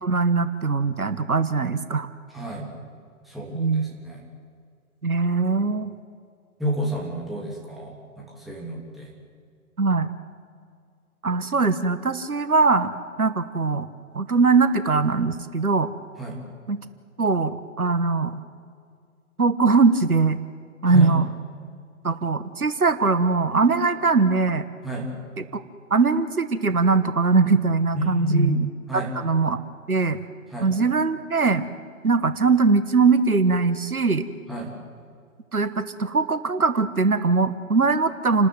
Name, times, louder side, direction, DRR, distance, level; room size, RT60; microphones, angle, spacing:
voice 1, 0.0-2.1 3.5-3.8 5.0-5.9 9.8-10.1 11.2-12.9 13.2-13.9 14.1-15.9 16.7-16.8 17.2-18.4 19.4-20.4 20.8-21.2 22.0-24.7 25.4-25.5 25.9-28.6 28.9-29.6 29.9-30.2 30.6-31.6 32.0-34.3 35.5-38.5, right 4 dB, 80° right, 12 dB, 1.4 m, -21 dB
voice 2, 2.3-2.7 3.2-4.2 6.6-9.1 16.2-16.4 20.9-21.1 24.8-25.1 27.9-28.6 28.9-29.1 30.5-30.7 34.5-34.7, right 1 dB, ahead, -4 dB, 3.0 m, -29 dB
29.0 x 13.0 x 9.0 m, 2.2 s
figure-of-eight pair, 130°, 43 cm